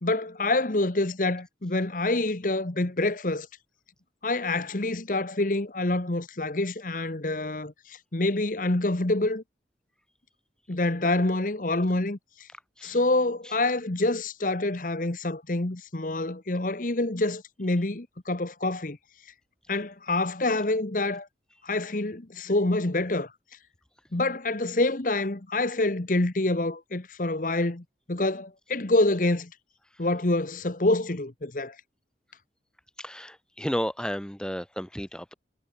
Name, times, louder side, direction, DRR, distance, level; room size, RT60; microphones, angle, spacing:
voice 1, 0.0-3.5 4.2-9.4 10.7-12.2 12.8-19.0 19.7-21.3 21.6-23.3 24.1-29.5 30.0-31.7, left 2 dB, 50° left, 1.2 m, -27 dB
voice 2, 33.0-35.3, equal, 5° left, 7.3 m, -32 dB
head